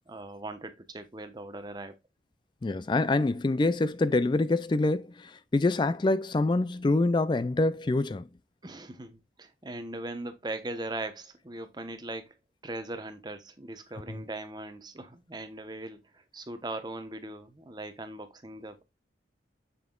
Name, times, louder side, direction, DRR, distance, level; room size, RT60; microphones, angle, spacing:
voice 1, 0.1-1.9 8.6-12.3 12.6-18.8, right 2 dB, 25° right, 0.9 m, -39 dB
voice 2, 2.6-8.3 14.1-14.2, left 2 dB, 25° left, 0.3 m, -26 dB
7.1 x 6.5 x 2.3 m
head